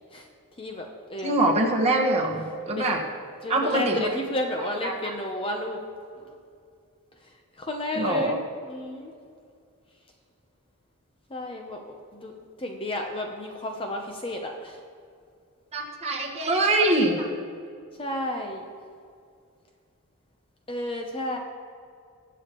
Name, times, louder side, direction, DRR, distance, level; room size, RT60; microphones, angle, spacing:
voice 1, 0.6-1.3 2.8-2.9 3.4-5.8 6.2-6.3 7.2-7.3 7.6-9.1 11.3-14.8 18.0-18.6 20.7-21.4, left 1 dB, 25° left, 2 dB, 0.7 m, -32 dB
voice 2, 1.2-3.0 3.5-4.1 4.8-5.2 7.9-8.4 15.7-17.3, right 1 dB, 30° right, -1 dB, 1.5 m, -24 dB
21.0 x 7.0 x 3.0 m, 2.3 s
head